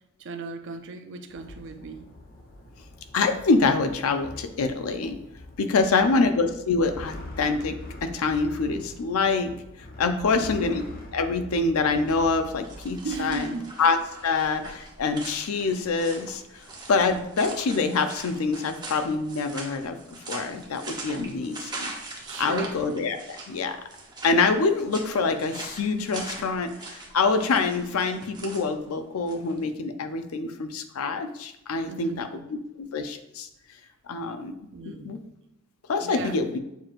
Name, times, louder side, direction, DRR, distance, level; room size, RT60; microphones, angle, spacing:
voice 1, 0.2-2.1 5.7-6.2 10.1-10.5 13.0-13.7 22.2-22.8 31.8-32.4 34.7-35.2 36.0-36.4, right 4 dB, 60° right, 7 dB, 0.5 m, -37 dB
sound 1, 1.3-13.7, left 1 dB, 45° left, 0.7 m, -44 dB
voice 2, 3.1-5.2 5.6-9.5 10.0-10.8 11.1-13.5 13.8-14.0 14.2-16.4 16.9-21.9 22.4-23.8 24.2-33.5 34.1-34.5 35.0-35.2 35.9-36.6, left 4 dB, 85° left, 8 dB, 0.5 m, -25 dB
sound 2, 12.0-29.6, right 2 dB, 20° right, 0.7 m, -42 dB
6.7 x 3.0 x 2.4 m, 0.85 s
head